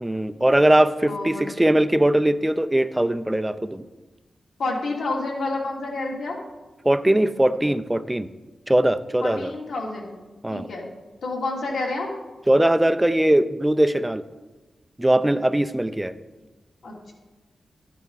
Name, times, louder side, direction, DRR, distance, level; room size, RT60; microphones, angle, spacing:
voice 1, 0.0-3.8 6.8-8.3 8.7-9.5 10.4-10.7 12.5-14.2 15.0-16.1, right 1 dB, 10° right, 11 dB, 0.5 m, -20 dB
voice 2, 1.1-1.4 4.6-6.4 9.2-10.9 11.2-12.1 16.8-17.1, left 2 dB, 85° left, -2 dB, 2.8 m, -29 dB
13.5 x 10.0 x 4.0 m, 1.2 s
wide cardioid pair, 145°, 0 cm